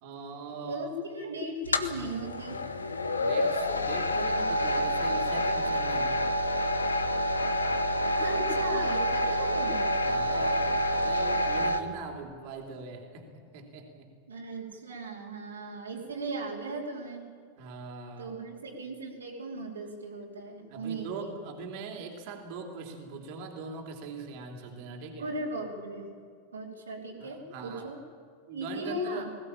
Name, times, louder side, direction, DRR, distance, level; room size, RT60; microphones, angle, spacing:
voice 1, 0.0-0.9 3.2-6.3 10.0-14.1 17.6-18.3 20.7-25.3 27.2-27.9 28.5-29.3, right 4 dB, 45° right, 2 dB, 3.2 m, -41 dB
voice 2, 0.6-2.6 8.1-9.9 14.3-17.3 18.2-21.3 25.2-26.1 26.5-28.0 28.5-29.3, right 1 dB, 70° right, -1 dB, 3.1 m, -37 dB
sound 1, 1.6-11.8, equal, 75° left, 1.3 m, -28 dB
20.5 x 17.0 x 8.8 m, 2.2 s
figure-of-eight pair, 90°, 0 cm